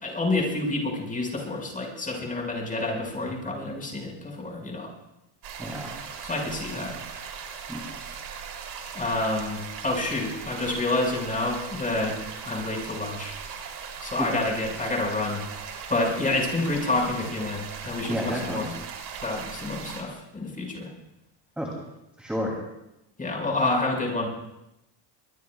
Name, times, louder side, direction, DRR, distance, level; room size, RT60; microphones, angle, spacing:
voice 1, 0.0-4.9 6.2-7.0 8.9-12.2 12.4-13.3 14.0-15.4 15.9-18.7 19.2-20.9 23.2-24.3, left 2 dB, 15° left, -1 dB, 5.6 m, -28 dB
sound 1, 5.4-20.0, right 6 dB, 50° right, 3.5 m, -39 dB
voice 2, 5.6-6.0 7.7-7.8 14.2-14.3 18.1-18.7 21.6-21.7 22.2-22.5, equal, ahead, -2 dB, 3.1 m, -30 dB
23.0 x 22.0 x 2.4 m, 0.89 s
cardioid pair, 130°, 49 cm